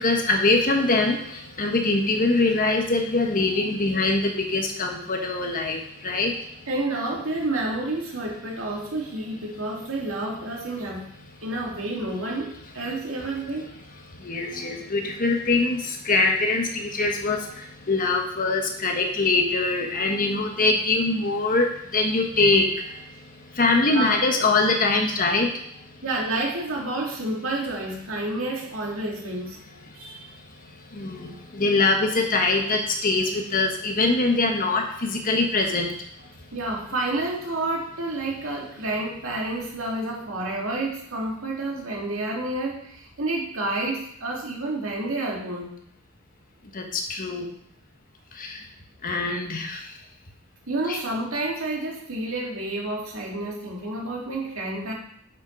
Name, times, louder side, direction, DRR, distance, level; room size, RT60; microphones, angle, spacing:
voice 1, 0.0-6.4 14.2-23.1 23.5-25.5 30.9-35.9 46.7-47.5 48.3-48.6 49.0-49.9 50.9-51.0, left 3 dB, 40° left, 3 dB, 1.2 m, -23 dB
voice 2, 6.7-11.1 11.4-13.7 23.9-24.2 26.0-29.6 29.9-30.3 36.5-45.7 50.7-54.9, right 2 dB, 70° right, -2 dB, 2.4 m, -29 dB
7.4 x 5.9 x 5.3 m, 0.70 s
head